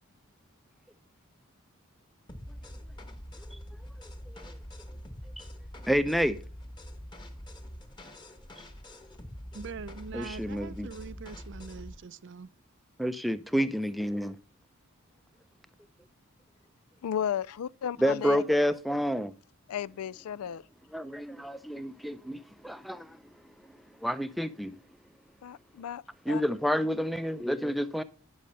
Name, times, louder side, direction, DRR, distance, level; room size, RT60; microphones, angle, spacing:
sound 1, 2.3-12.0, equal, 20° left, 1.2 m, -45 dB
voice 1, 5.9-6.4 10.1-10.9 13.0-14.4 18.0-19.3 20.9-23.2 24.0-24.8 26.3-28.0, equal, ahead, 0.5 m, -29 dB
voice 2, 9.5-12.5, right 5 dB, 55° right, 0.5 m, -43 dB
voice 3, 17.0-18.4 19.7-20.7 25.4-26.4, left 9 dB, 80° left, 0.4 m, -34 dB
10.0 x 6.3 x 5.5 m
head